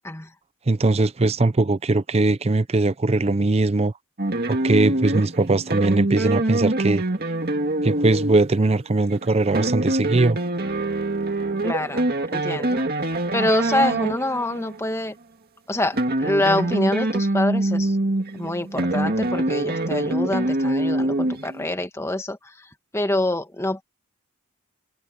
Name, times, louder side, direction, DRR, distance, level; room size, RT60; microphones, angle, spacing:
voice 1, 0.7-3.9 4.5-7.0 7.8-10.4, right 2 dB, 30° right, 0.5 m, -20 dB
sound 1, 4.2-14.8 15.8-21.6, right 2 dB, 45° right, 2.2 m, -24 dB
voice 2, 11.6-12.9 13.3-15.2 15.7-18.0 18.3-23.8, left 1 dB, 15° left, 1.6 m, -26 dB
head